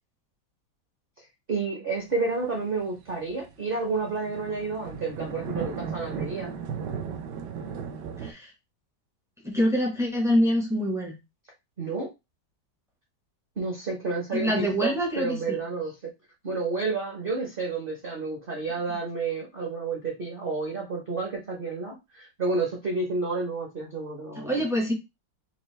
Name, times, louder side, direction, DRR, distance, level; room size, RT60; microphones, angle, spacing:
voice 1, 1.5-6.5 11.8-12.1 13.6-15.9 16.4-24.5, right 3 dB, 45° right, 0 dB, 0.7 m, -30 dB
sound 1, 2.1-8.3, right 6 dB, 75° right, 1.1 m, -36 dB
voice 2, 8.2-8.5 9.4-11.2 14.3-15.6 18.9-19.0 24.3-24.9, equal, 5° right, 0 dB, 0.4 m, -25 dB
4.4 x 2.5 x 3.2 m, 0.23 s
omnidirectional pair, 2.1 m